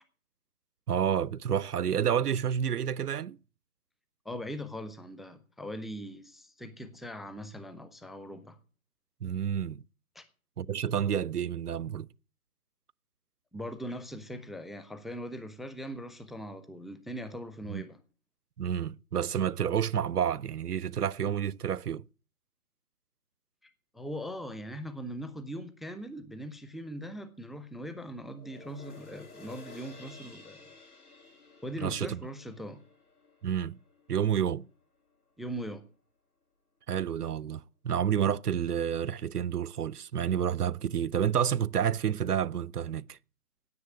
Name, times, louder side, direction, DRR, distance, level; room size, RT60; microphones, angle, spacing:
voice 1, 0.9-3.4 9.2-9.8 10.6-12.1 17.7-17.8 18.6-22.0 31.8-32.2 33.4-33.8 34.1-34.7 36.9-43.2, right 9 dB, 85° right, 0.6 m, -29 dB
voice 2, 4.2-8.6 10.2-10.3 13.5-18.0 23.6-30.6 31.6-32.8 35.4-35.8, equal, ahead, 0.5 m, -40 dB
sound 1, 28.3-34.9 35.3-35.4, left 3 dB, 80° left, 3.1 m, -53 dB
9.6 x 8.3 x 9.4 m
figure-of-eight pair, 175°, 45 cm